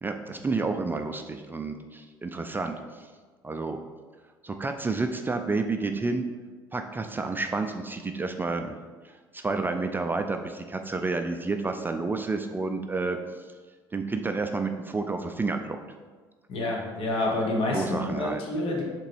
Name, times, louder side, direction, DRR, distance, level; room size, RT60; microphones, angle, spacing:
voice 1, 0.0-3.1 3.4-3.8 4.4-6.3 6.7-8.8 9.0-13.2 13.9-15.8 17.7-18.4, right 3 dB, 20° right, 6 dB, 0.3 m, -30 dB
voice 2, 16.5-18.8, left 2 dB, 60° left, -1 dB, 1.2 m, -28 dB
3.8 x 3.0 x 4.6 m, 1.4 s
hypercardioid pair, 60°, 11 cm